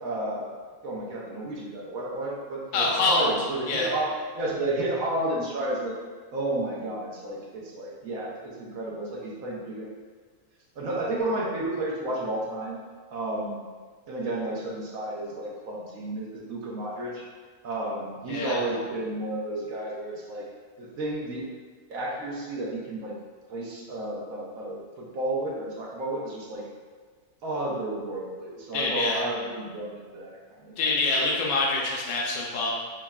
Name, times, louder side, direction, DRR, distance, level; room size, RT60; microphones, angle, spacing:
voice 1, 0.0-0.5 0.8-5.9 6.3-9.9 10.8-12.8 13.1-13.6 14.1-17.2 17.6-20.4 20.8-21.4 21.9-23.1 23.5-26.6 27.4-30.9 31.2-31.5, right 1 dB, 70° right, -4 dB, 1.2 m, -32 dB
voice 2, 2.7-3.3 3.7-3.9 18.3-18.6 28.7-29.2 30.8-32.7, left 3 dB, 75° left, -2 dB, 1.1 m, -25 dB
5.9 x 2.1 x 2.3 m, 1.5 s
omnidirectional pair, 1.5 m